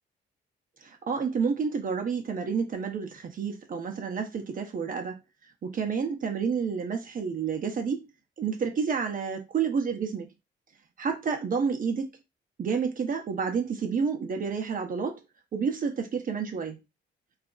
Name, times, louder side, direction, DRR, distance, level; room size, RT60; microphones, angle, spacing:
voice 1, 0.8-5.2 5.6-8.1 8.4-10.3 11.0-12.1 12.6-15.2 15.5-16.8, right 6 dB, 45° right, 0.6 m, -29 dB
2.4 x 2.0 x 3.7 m
cardioid pair, 90°, 20 cm